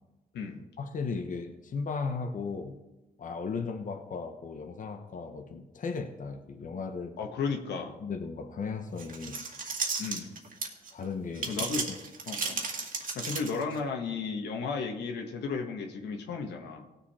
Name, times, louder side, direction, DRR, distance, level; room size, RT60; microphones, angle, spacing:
voice 1, 0.8-2.8 3.2-7.1 8.0-9.5 10.9-11.6 11.9-12.0, left 4 dB, 50° left, 5 dB, 1.1 m, -36 dB
voice 2, 7.2-8.0 10.0-10.4 11.5-11.8 12.3-12.6 13.1-16.9, left 5 dB, 85° left, 3 dB, 1.5 m, -34 dB
sound 1, 9.0-10.9 11.3-13.8, right 4 dB, 55° right, 2.1 m, -34 dB
17.5 x 6.9 x 4.4 m, 1.0 s
cardioid pair, 80°, 17 cm